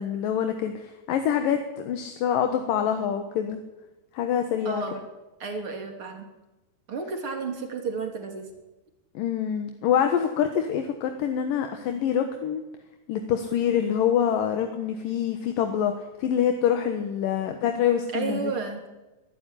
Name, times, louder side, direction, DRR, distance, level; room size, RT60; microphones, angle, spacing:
voice 1, 0.0-3.6 4.1-4.8 9.1-12.6 13.1-15.9 16.2-18.5, left 9 dB, 65° left, 6 dB, 2.7 m, -25 dB
voice 2, 4.7-5.0 5.4-6.3 6.9-8.5 18.1-18.8, right 4 dB, 35° right, 4 dB, 3.3 m, -31 dB
22.5 x 12.5 x 10.0 m, 1.1 s
omnidirectional pair, 4.8 m